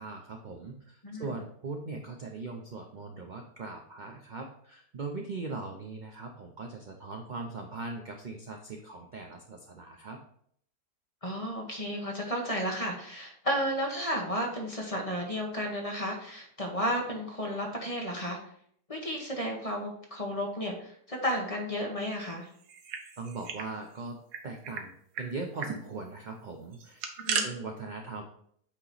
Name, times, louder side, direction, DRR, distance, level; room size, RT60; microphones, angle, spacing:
voice 1, 0.0-10.2 23.2-27.1 27.4-28.2, right 3 dB, 65° right, 2 dB, 0.4 m, -40 dB
voice 2, 11.2-18.4 18.9-22.5 27.2-27.5, equal, 25° left, 0 dB, 0.9 m, -33 dB
sound 1, 22.6-23.7 24.0-24.1 24.3-24.8 25.1-25.3 25.6-25.8 26.7-27.5, right 6 dB, 85° right, 1.3 m, -34 dB
8.6 x 2.9 x 4.0 m, 0.65 s
omnidirectional pair, 1.7 m